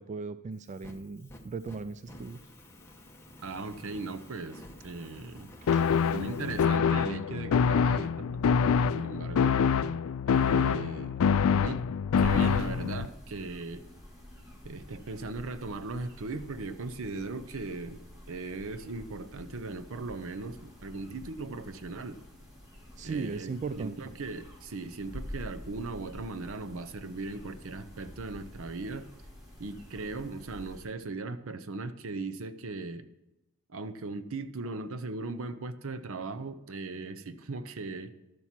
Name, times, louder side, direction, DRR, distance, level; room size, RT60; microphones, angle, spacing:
voice 1, 0.0-2.4 5.6-5.9 23.0-24.0, right 4 dB, 35° right, 14 dB, 0.3 m, -37 dB
Fire, 0.5-6.6, left 1 dB, 10° left, 1.2 m, -50 dB
voice 2, 3.4-5.5 6.1-9.6 10.3-11.2 11.5-11.8 12.2-13.8 14.6-18.0 18.3-22.2 23.0-29.1 29.6-33.1 33.7-38.1, right 3 dB, 70° right, 11 dB, 0.7 m, -38 dB
sound 1, 5.7-13.1, left 6 dB, 70° left, 0.4 m, -25 dB
sound 2, 12.2-30.8, equal, 15° right, 2.8 m, -47 dB
12.5 x 7.2 x 5.9 m, 0.97 s
head